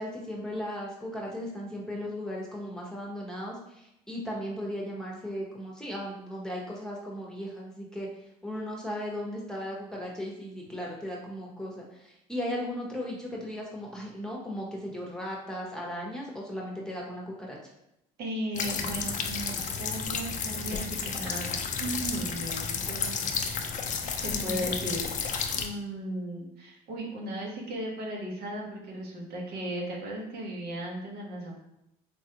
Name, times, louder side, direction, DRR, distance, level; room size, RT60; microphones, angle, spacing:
voice 1, 0.0-8.1 8.4-17.6 24.3-24.7, equal, 5° left, -3 dB, 0.9 m, -36 dB
voice 2, 18.2-21.5 21.8-23.2 24.2-31.6, right 1 dB, 70° right, -2 dB, 0.9 m, -36 dB
sound 1, 18.5-25.7, left 6 dB, 45° left, 0.4 m, -32 dB
3.4 x 2.4 x 2.8 m, 0.83 s
supercardioid pair, 75°, 17 cm